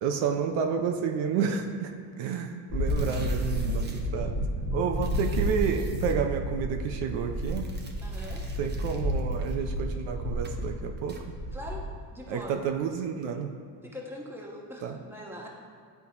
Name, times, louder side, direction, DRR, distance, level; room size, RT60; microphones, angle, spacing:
voice 1, 0.0-4.4 4.7-7.7 8.6-11.2 12.3-13.5 14.8-15.0, right 7 dB, 70° right, 4 dB, 0.7 m, -30 dB
sound 1, 2.7-12.0, equal, 55° left, 1.4 m, -31 dB
sound 2, 2.8-4.0 5.0-6.1 7.3-10.0 10.4-10.7 11.1-11.2, right 3 dB, 20° right, 0.7 m, -50 dB
voice 2, 8.0-8.4 11.5-12.6 13.8-15.5, left 1 dB, 5° right, -2 dB, 1.1 m, -42 dB
10.5 x 3.9 x 2.8 m, 2.2 s
supercardioid pair, 95°, 47 cm